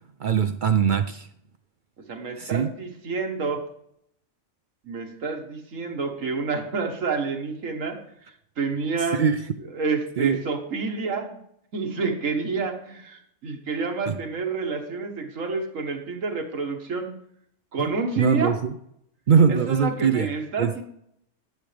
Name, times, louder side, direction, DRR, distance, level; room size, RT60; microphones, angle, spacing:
voice 1, 0.2-1.3 2.4-2.7 9.1-9.4 10.2-10.4 14.1-14.2 17.8-18.7 19.3-20.3 20.6-20.7, right 6 dB, 65° right, 9 dB, 0.5 m, -21 dB
voice 2, 2.1-3.6 4.8-8.0 8.6-9.2 9.6-11.4 11.7-17.1 17.7-18.6 19.5-20.8, right 4 dB, 85° right, 4 dB, 1.8 m, -29 dB
10.5 x 7.6 x 3.4 m, 0.71 s
omnidirectional pair, 1.3 m